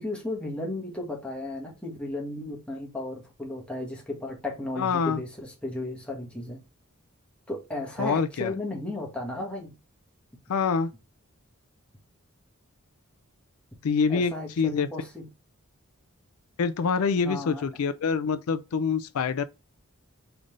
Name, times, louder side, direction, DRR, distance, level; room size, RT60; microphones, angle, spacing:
voice 1, 0.0-6.6 7.5-9.7 14.1-15.3 17.2-17.6, left 2 dB, 5° left, 1.3 m, -34 dB
voice 2, 4.8-5.2 8.0-8.5 10.5-10.9 13.8-14.9 16.6-19.4, left 5 dB, 85° left, 0.4 m, -26 dB
3.9 x 3.4 x 3.7 m
head